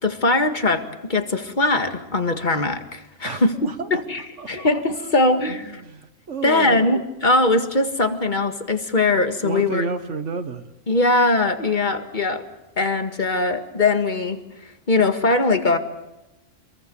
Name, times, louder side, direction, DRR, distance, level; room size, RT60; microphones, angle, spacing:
voice 1, 0.0-4.2 4.5-5.7 6.4-9.8 10.9-12.4 12.8-15.8, left 2 dB, 35° left, 7 dB, 2.0 m, -21 dB
voice 2, 3.2-4.0 4.4-5.1 5.5-6.9 9.4-10.7, right 4 dB, 60° right, 9 dB, 1.6 m, -31 dB
27.5 x 22.0 x 7.0 m, 0.95 s
omnidirectional pair, 1.4 m